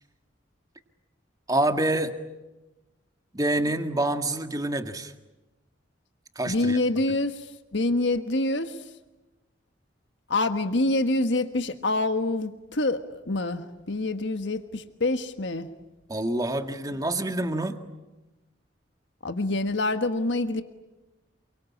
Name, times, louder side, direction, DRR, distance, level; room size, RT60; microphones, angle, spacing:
voice 1, 1.5-2.1 3.3-5.1 6.4-6.8 16.1-17.8, right 1 dB, 20° right, 7 dB, 1.9 m, -27 dB
voice 2, 6.5-7.5 7.7-8.8 10.3-15.7 19.2-20.6, left 2 dB, 70° left, 8 dB, 1.5 m, -26 dB
28.5 x 24.0 x 8.6 m, 1.1 s
head